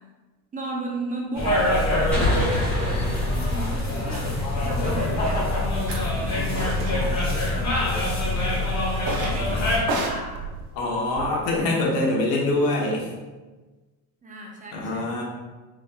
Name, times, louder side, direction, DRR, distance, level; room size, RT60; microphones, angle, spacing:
voice 1, 0.5-5.6 5.9-8.5 9.2-10.6 14.2-15.1, right 1 dB, 20° right, -1 dB, 0.5 m, -36 dB
sound 1, 1.3-9.8, left 1 dB, 40° left, 1.2 m, -24 dB
sound 2, 2.1-5.6, equal, 5° left, 1.2 m, -29 dB
sound 3, 5.9-6.0 6.5-7.0 7.3-8.0 9.0-9.4 9.8-11.6, right 2 dB, 85° right, 0.8 m, -32 dB
voice 2, 10.7-13.0 14.7-15.2, left 2 dB, 85° left, -3 dB, 1.2 m, -24 dB
4.0 x 3.5 x 2.3 m, 1.3 s
cardioid pair, 140°, 42 cm